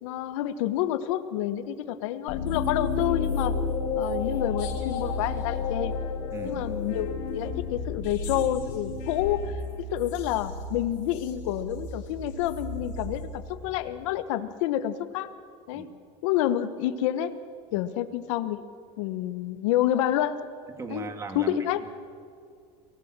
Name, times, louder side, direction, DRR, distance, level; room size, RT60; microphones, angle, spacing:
voice 1, 0.0-3.5 3.9-5.9 6.4-9.5 9.9-15.3 15.7-15.9 16.2-17.3 17.7-18.6 19.0-20.4 20.9-21.1 21.3-21.8, left 12 dB, 85° left, 11 dB, 1.2 m, -28 dB
sound 1, 2.3-13.8, left 4 dB, 55° left, 5.5 m, -32 dB
voice 2, 6.3-6.6 15.7-15.9 17.7-17.8 20.8-21.5, right 3 dB, 20° right, 7 dB, 1.8 m, -37 dB
25.0 x 17.0 x 7.5 m, 2.3 s
cardioid pair, 170°, 16 cm